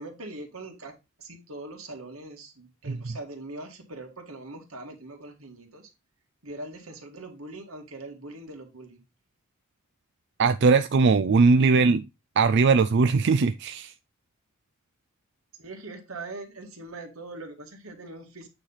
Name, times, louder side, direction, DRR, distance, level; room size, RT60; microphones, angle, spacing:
voice 1, 0.0-5.9 6.4-9.0 15.5-18.5, right 2 dB, 90° right, 2.0 m, -42 dB
voice 2, 10.4-12.0 12.4-13.9, right 4 dB, 55° right, 0.4 m, -20 dB
8.8 x 3.4 x 5.6 m
head